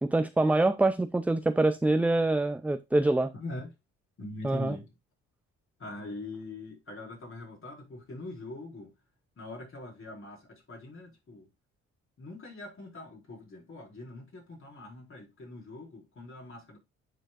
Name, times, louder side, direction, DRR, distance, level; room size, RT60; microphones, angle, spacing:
voice 1, 0.0-3.3 4.4-4.7, right 2 dB, 5° right, 0.3 m, -25 dB
voice 2, 3.3-3.7 4.2-4.9 5.8-8.9 9.4-11.4 12.2-16.8, left 2 dB, 45° left, 4.3 m, -43 dB
10.0 x 4.6 x 2.4 m
cardioid pair, 90°, 30 cm